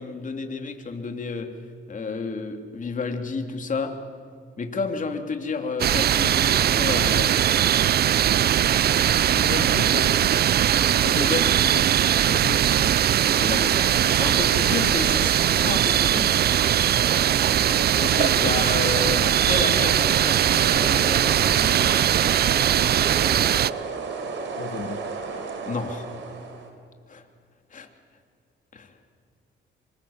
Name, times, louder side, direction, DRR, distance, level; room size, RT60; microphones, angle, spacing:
voice 1, 0.0-1.5 1.9-3.9 4.6-7.4 11.0-11.5 13.3-16.3 18.0-21.9 25.6-26.1 27.1-27.2 27.7-27.9 28.7-28.9, left 4 dB, 40° left, 5 dB, 3.2 m, -31 dB
sound 1, 5.8-23.7, right 10 dB, 55° right, 0.6 m, -20 dB
voice 2, 9.2-10.4 11.6-12.9 18.3-18.5 19.0-19.2 24.6-25.1, left 7 dB, 60° left, 7 dB, 1.5 m, -35 dB
sound 2, 13.3-26.7, right 5 dB, 70° right, 4.2 m, -34 dB
26.5 x 25.5 x 7.3 m, 2.1 s
cardioid pair, 90°, 20 cm